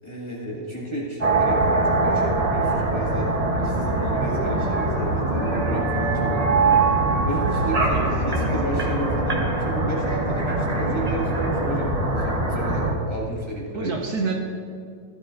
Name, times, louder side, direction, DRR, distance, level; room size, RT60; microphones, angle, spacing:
voice 1, 0.0-6.8 7.2-13.9, right 1 dB, 15° left, -6 dB, 1.5 m, -32 dB
sound 1, 1.2-12.9, right 2 dB, 25° right, 0.9 m, -22 dB
voice 2, 7.9-8.5 13.7-14.4, right 4 dB, 60° right, 1 dB, 1.3 m, -29 dB
15.5 x 11.0 x 2.6 m, 2.2 s
omnidirectional pair, 2.0 m